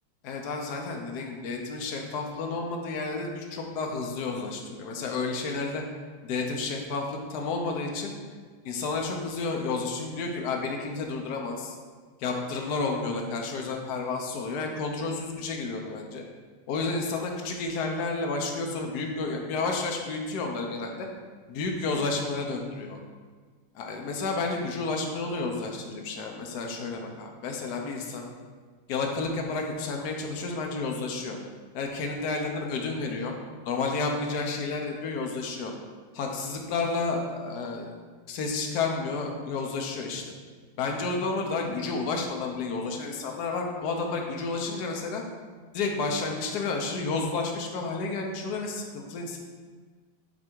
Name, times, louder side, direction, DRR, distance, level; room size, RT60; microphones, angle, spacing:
voice 1, 0.2-5.8 6.2-8.1 8.6-11.7 12.2-16.2 16.7-21.1 21.5-23.0 23.7-28.2 28.9-31.4 31.7-33.3 33.6-35.7 36.1-37.9 38.3-40.3 40.8-45.2 45.7-49.4, left 3 dB, 65° left, 1 dB, 1.3 m, -31 dB
8.6 x 3.4 x 4.6 m, 1.5 s
omnidirectional pair, 2.1 m